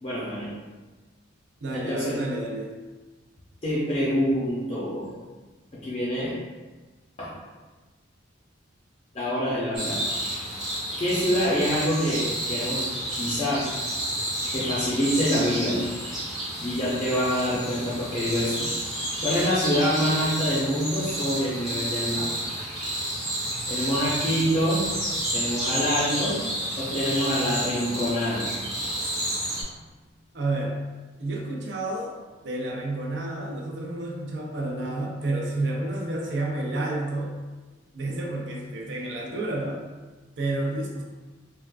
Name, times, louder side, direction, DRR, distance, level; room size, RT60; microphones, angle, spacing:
voice 1, 0.0-0.5 1.7-2.2 3.6-5.1 5.7-6.3 7.2-7.3 9.1-10.0 11.0-12.9 13.1-13.7 14.5-15.8 16.5-18.7 19.2-22.3 23.7-24.9 25.3-26.4 26.8-28.5, equal, 30° left, -7 dB, 0.5 m, -26 dB
voice 2, 1.6-2.7 30.3-30.8 31.2-32.1 32.4-37.4 37.9-39.8 40.4-41.0, right 2 dB, 65° right, -2 dB, 0.6 m, -30 dB
sound 1, 9.7-29.6, right 1 dB, ahead, 0.9 m, -30 dB
3.5 x 2.3 x 2.3 m, 1.2 s
head